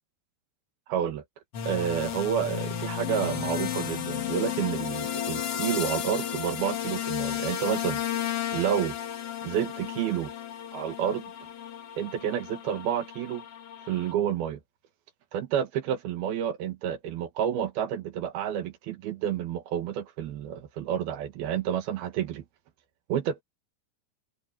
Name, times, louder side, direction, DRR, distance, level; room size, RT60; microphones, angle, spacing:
voice 1, 0.9-1.2 1.7-9.0 9.4-10.3 10.7-11.3 12.0-13.4 13.9-14.6 15.3-22.4 23.1-23.4, right 9 dB, 65° right, 3.2 m, -30 dB
sound 1, 1.5-14.1, left 10 dB, 65° left, 1.4 m, -33 dB
omnidirectional pair, 5.0 m